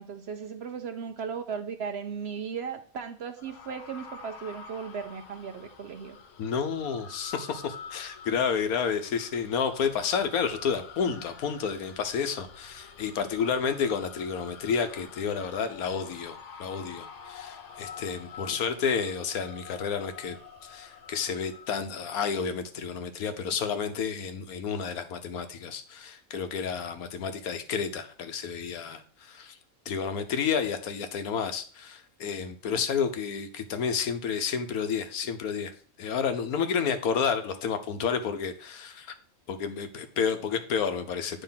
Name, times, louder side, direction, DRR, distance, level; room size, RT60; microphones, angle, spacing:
voice 1, 0.0-6.2, right 6 dB, 55° right, 7 dB, 0.8 m, -36 dB
sound 1, 3.4-21.8, left 5 dB, 65° left, 1.0 m, -47 dB
voice 2, 6.4-20.4 20.6-29.6 29.9-39.1 39.5-41.4, left 6 dB, 85° left, 9 dB, 1.3 m, -30 dB
9.1 x 3.2 x 5.7 m, 0.43 s
omnidirectional pair, 1.5 m